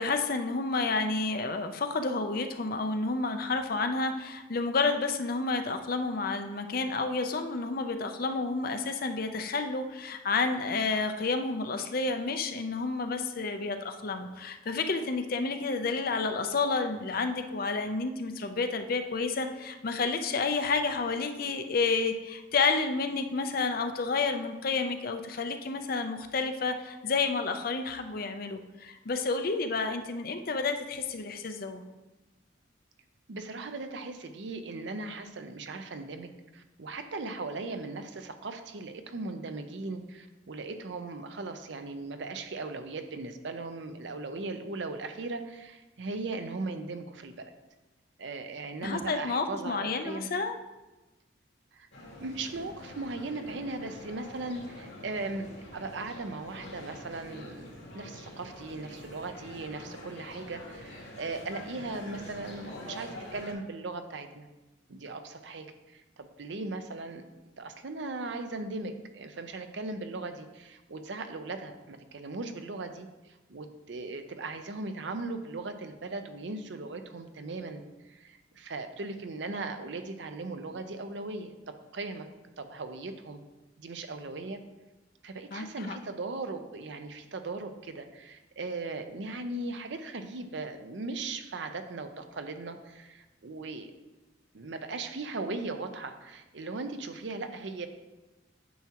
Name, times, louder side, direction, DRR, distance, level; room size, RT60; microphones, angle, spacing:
voice 1, 0.0-31.8 48.8-50.5 85.5-86.0, left 4 dB, 50° left, 7 dB, 0.6 m, -30 dB
voice 2, 33.3-47.5 48.2-50.3 51.7-51.9 52.2-57.7 57.9-64.5 64.9-67.3 67.6-77.8 78.1-82.3 82.6-83.4 83.8-84.6 85.2-93.9 94.5-97.9, right 3 dB, 70° right, 8 dB, 0.6 m, -38 dB
sound 1, 51.9-63.5, left 1 dB, 75° left, 2.5 m, -46 dB
9.3 x 6.0 x 2.9 m, 1.1 s
head